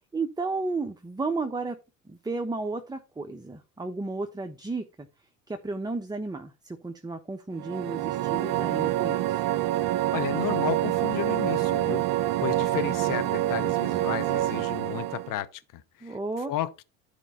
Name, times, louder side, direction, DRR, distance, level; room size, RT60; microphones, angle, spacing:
voice 1, 0.1-1.8 2.0-5.1 5.5-9.5 16.0-16.5, right 3 dB, 10° right, 1.1 m, -33 dB
sound 1, 7.5-15.4, right 14 dB, 55° right, 0.7 m, -27 dB
voice 2, 10.1-12.1 12.4-16.1 16.5-16.8, left 13 dB, 50° left, 1.1 m, -33 dB
11.5 x 4.9 x 4.3 m
hypercardioid pair, 75°, 41 cm